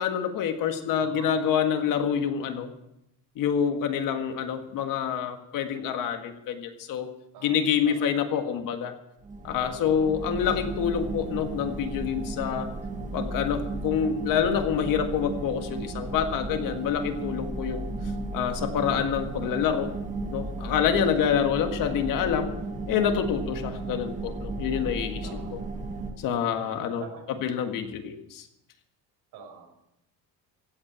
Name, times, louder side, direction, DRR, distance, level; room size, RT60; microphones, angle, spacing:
voice 1, 0.0-2.7 3.4-7.1 7.4-8.9 9.4-12.7 13.1-17.9 18.3-19.9 20.3-22.5 22.9-25.6 26.2-27.0 27.4-28.5, left 8 dB, 55° left, 6 dB, 1.7 m, -27 dB
voice 2, 1.0-1.4 7.3-7.6 7.8-8.1 20.9-21.2 25.2-25.5 26.6-27.3 29.3-29.7, right 6 dB, 70° right, 1 dB, 6.3 m, -45 dB
sound 1, 9.2-26.1, right 2 dB, 20° right, 1.6 m, -34 dB
16.0 x 8.7 x 8.6 m, 0.83 s
cardioid pair, 180°, 39 cm